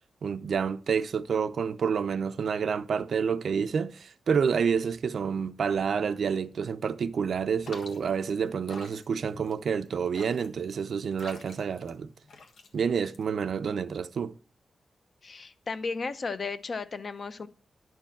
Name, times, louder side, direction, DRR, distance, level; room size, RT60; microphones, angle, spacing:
voice 1, 0.2-12.1 12.7-14.3, right 6 dB, 60° right, 0.5 m, -28 dB
sound 1, 7.6-13.6, left 4 dB, 85° left, 1.5 m, -49 dB
voice 2, 15.2-17.5, left 4 dB, 40° left, 0.6 m, -34 dB
11.0 x 4.5 x 7.2 m
wide cardioid pair, 170°, 0 cm